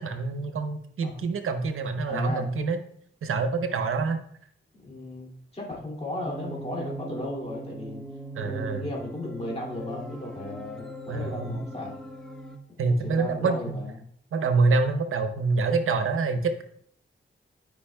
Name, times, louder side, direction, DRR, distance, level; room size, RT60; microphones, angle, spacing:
voice 1, 0.0-2.8 3.2-4.2 8.4-8.9 11.1-11.6 12.8-13.8 14.3-16.6, right 4 dB, 90° right, 8 dB, 0.8 m, -26 dB
voice 2, 2.0-2.5 4.8-8.0 8.4-12.0 12.8-14.0, left 2 dB, 30° left, -3 dB, 2.5 m, -36 dB
sound 1, 6.2-12.6, right 1 dB, 5° left, 0.9 m, -40 dB
11.5 x 5.2 x 2.2 m, 0.63 s
cardioid pair, 65°, 21 cm